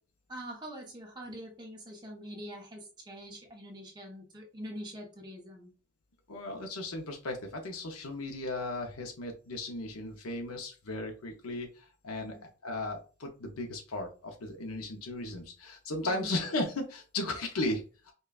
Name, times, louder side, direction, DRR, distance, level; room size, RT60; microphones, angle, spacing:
voice 1, 0.3-5.7 12.2-12.4 16.0-16.3, equal, 20° right, 0 dB, 0.9 m, -44 dB
voice 2, 6.3-12.4 12.6-18.1, left 2 dB, 85° left, 3 dB, 0.7 m, -36 dB
5.3 x 2.3 x 2.4 m, 0.35 s
head